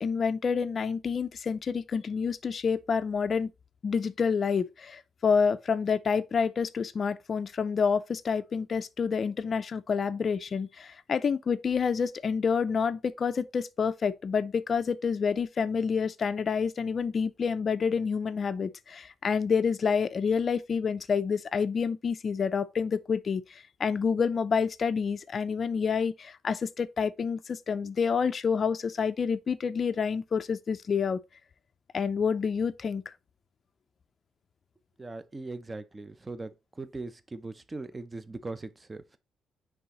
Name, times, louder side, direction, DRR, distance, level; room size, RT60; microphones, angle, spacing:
voice 1, 0.0-3.5 3.8-31.2 31.9-33.1, left 6 dB, 35° left, 0.4 m, -28 dB
voice 2, 35.0-36.5 36.8-39.2, right 3 dB, 15° right, 0.6 m, -40 dB
9.4 x 3.4 x 3.0 m
cardioid pair, 140°, 0 cm